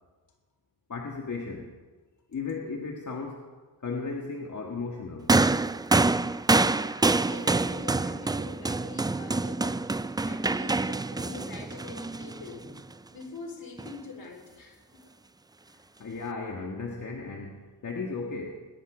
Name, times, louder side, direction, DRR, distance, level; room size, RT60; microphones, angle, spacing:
voice 1, 0.9-1.7 2.3-3.4 3.8-5.3 15.6-18.5, left 4 dB, 50° left, 1 dB, 1.7 m, -35 dB
sound 1, 5.3-12.8 13.8-13.9, right 3 dB, 10° right, 0.4 m, -26 dB
voice 2, 6.5-12.8 13.1-15.1, left 3 dB, 65° left, 2 dB, 3.6 m, -45 dB
21.0 x 10.5 x 5.0 m, 1.4 s
cardioid pair, 60°, 38 cm